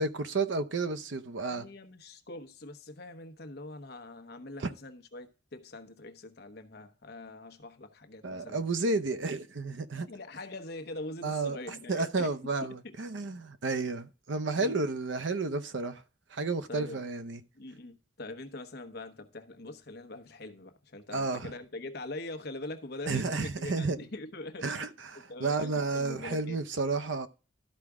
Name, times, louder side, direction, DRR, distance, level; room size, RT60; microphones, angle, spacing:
voice 1, 0.0-1.7 4.6-4.7 8.2-10.1 11.2-11.6 11.9-16.0 16.3-17.4 21.1-21.5 23.1-24.0 24.6-27.3, right 3 dB, 75° right, 0.7 m, -31 dB
voice 2, 1.5-8.7 10.1-12.3 12.6-13.0 14.6-14.8 16.7-17.0 17.5-24.9 25.2-26.6, left 2 dB, 60° left, 1.0 m, -43 dB
13.0 x 4.9 x 3.5 m
head